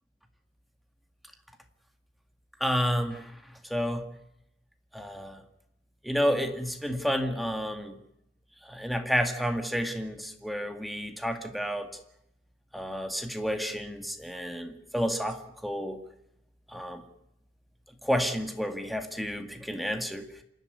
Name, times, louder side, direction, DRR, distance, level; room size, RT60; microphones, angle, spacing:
voice 1, 2.6-3.3 3.7-4.1 4.9-5.4 6.0-8.0 8.7-11.9 12.7-16.0 16.7-17.0 18.0-20.2, equal, ahead, 5 dB, 1.9 m, -30 dB
27.0 x 12.0 x 9.6 m, 0.80 s
head